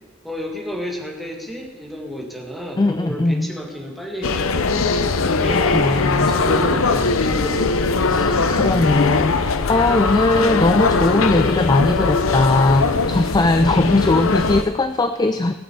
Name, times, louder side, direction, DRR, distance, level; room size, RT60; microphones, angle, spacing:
voice 1, 0.2-4.9 5.2-7.8, equal, ahead, 0 dB, 2.0 m, -31 dB
voice 2, 2.8-3.5 5.5-6.3 8.1-15.5, left 2 dB, 20° left, 9 dB, 0.4 m, -19 dB
SF CA Airport, 4.2-14.6, left 4 dB, 90° left, 0.7 m, -20 dB
19.0 x 6.8 x 6.8 m, 1.3 s
head